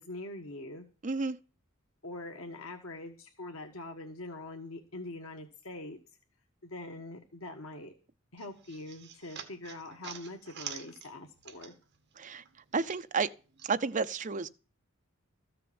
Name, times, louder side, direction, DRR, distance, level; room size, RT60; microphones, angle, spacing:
voice 1, 0.0-0.8 2.0-6.0 6.6-7.9 8.3-11.7, left 2 dB, 85° left, 1.5 m, -43 dB
voice 2, 1.0-1.4 12.2-12.4 12.7-13.3 13.6-14.5, right 4 dB, 40° right, 0.6 m, -31 dB
sound 1, 8.4-12.0 12.3-13.7, right 8 dB, 55° right, 1.9 m, -46 dB
14.0 x 6.8 x 7.9 m
head